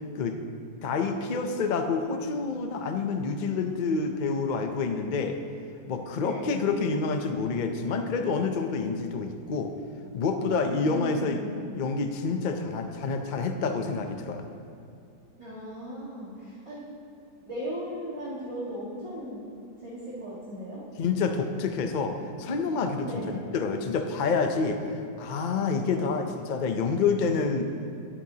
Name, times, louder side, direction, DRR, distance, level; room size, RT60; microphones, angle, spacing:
voice 1, 0.8-5.4 5.9-9.7 10.1-11.4 11.8-14.5 21.0-24.8 25.2-27.7, left 4 dB, 70° left, 5 dB, 0.4 m, -28 dB
voice 2, 6.2-6.6 10.7-11.6 15.4-16.9 17.4-19.4 19.8-20.8 22.4-22.7 23.0-23.5 25.8-26.1, equal, 20° right, -8 dB, 1.6 m, -37 dB
17.5 x 8.8 x 2.8 m, 2.5 s
omnidirectional pair, 1.7 m